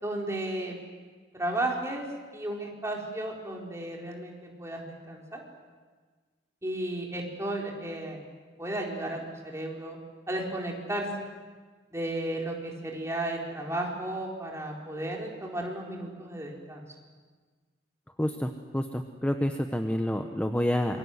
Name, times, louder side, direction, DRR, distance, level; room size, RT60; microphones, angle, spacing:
voice 1, 0.0-0.8 1.3-2.0 2.3-5.4 6.6-8.3 8.6-10.0 10.3-11.1 11.9-16.9, right 1 dB, 15° right, -1 dB, 4.3 m, -34 dB
voice 2, 18.2-21.0, left 1 dB, 10° left, 5 dB, 1.0 m, -28 dB
26.5 x 23.0 x 8.0 m, 1.4 s
head